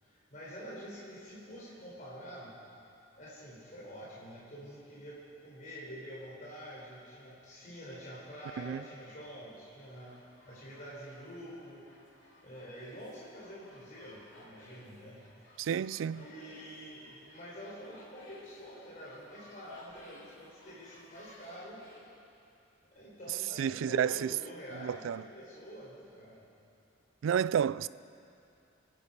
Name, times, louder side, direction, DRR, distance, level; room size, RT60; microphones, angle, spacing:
voice 1, 0.0-2.6 3.2-11.9 12.4-15.5 16.1-21.8 22.9-26.5, equal, 40° left, 3.8 m, -47 dB
sound 1, 9.8-22.1, left 1 dB, 65° left, 3.1 m, -56 dB
voice 2, 15.6-16.2 23.6-24.3 24.8-25.2 27.2-27.9, right 8 dB, 70° right, 0.3 m, -30 dB
26.5 x 10.0 x 5.3 m
head